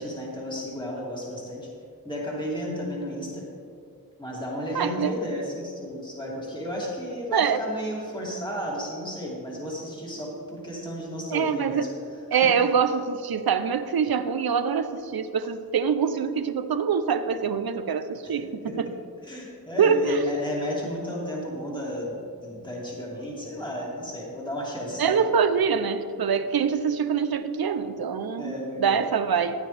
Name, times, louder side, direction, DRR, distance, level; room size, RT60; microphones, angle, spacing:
voice 1, 0.0-1.7 2.0-3.5 4.2-11.9 12.3-12.5 18.2-18.8 19.2-25.2 28.4-29.0, equal, 10° left, -5 dB, 2.7 m, -33 dB
voice 2, 4.7-5.1 7.3-7.6 11.3-11.8 12.3-18.9 19.8-20.3 25.0-29.5, right 6 dB, 85° right, 11 dB, 0.6 m, -24 dB
14.5 x 9.6 x 3.4 m, 2.4 s
wide cardioid pair, 65°, 36 cm